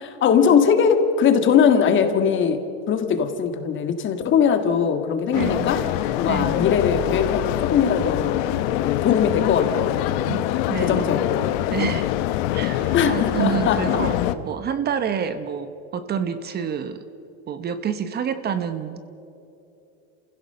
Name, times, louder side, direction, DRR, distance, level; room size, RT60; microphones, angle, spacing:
voice 1, 0.0-2.6 2.9-5.9 6.2-8.4 8.8-10.4 10.8-11.5 12.9-13.9, left 7 dB, 40° left, 7 dB, 1.9 m, -20 dB
sound 1, 5.3-14.3, left 13 dB, 65° left, 1.0 m, -24 dB
voice 2, 5.3-5.8 6.3-6.7 10.3-11.2 11.7-12.1 12.5-17.0 17.5-19.1, right 7 dB, 30° right, 10 dB, 1.1 m, -28 dB
28.0 x 16.0 x 6.9 m, 2.8 s
supercardioid pair, 130°, 32 cm